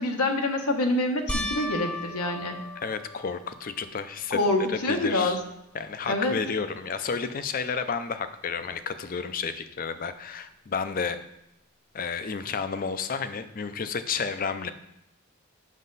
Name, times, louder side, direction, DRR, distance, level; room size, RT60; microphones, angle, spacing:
voice 1, 0.0-2.6 4.3-5.4 6.0-6.3, left 2 dB, 85° left, 3 dB, 1.1 m, -26 dB
sound 1, 1.3-3.9 4.5-5.1 5.4-5.5 8.7-8.8, left 1 dB, 5° left, 0.7 m, -36 dB
voice 2, 2.8-4.4 4.7-5.4 5.7-11.2 11.9-14.7, left 5 dB, 40° left, 11 dB, 0.4 m, -31 dB
7.3 x 6.5 x 4.0 m, 0.85 s
head